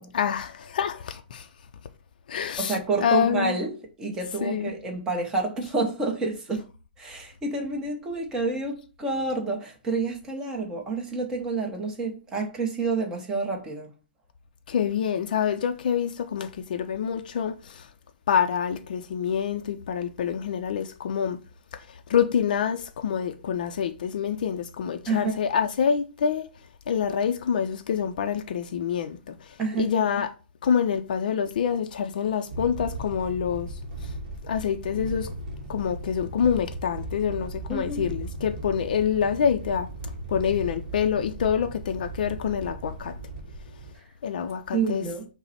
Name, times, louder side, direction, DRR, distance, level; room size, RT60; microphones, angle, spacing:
voice 1, 0.1-1.5 2.3-3.6 4.4-4.7 14.7-17.9 18.3-21.4 21.7-26.5 26.9-30.3 30.6-33.7 34.0-34.1 34.4-35.3 35.7-39.9 40.3-43.1 44.2-45.0, left 7 dB, 55° left, 0.4 m, -26 dB
voice 2, 2.6-6.6 7.0-13.9 25.1-25.4 29.6-29.9 37.7-38.1 44.7-45.3, right 3 dB, 10° right, 0.8 m, -29 dB
sound 1, 32.5-43.9, right 2 dB, 40° right, 1.0 m, -37 dB
5.7 x 2.1 x 4.1 m
hypercardioid pair, 170°, 6 cm